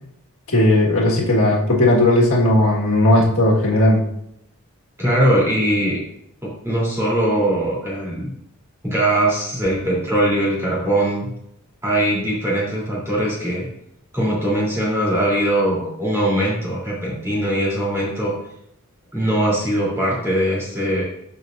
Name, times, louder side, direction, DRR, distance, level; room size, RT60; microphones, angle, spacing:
voice 1, 0.5-4.0, left 1 dB, 70° left, -3 dB, 1.6 m, -16 dB
voice 2, 5.0-6.0 6.4-8.3 8.8-11.3 11.8-13.7 14.1-18.3 19.1-21.0, right 1 dB, 10° right, -6 dB, 3.1 m, -21 dB
12.5 x 5.3 x 2.5 m, 0.76 s
head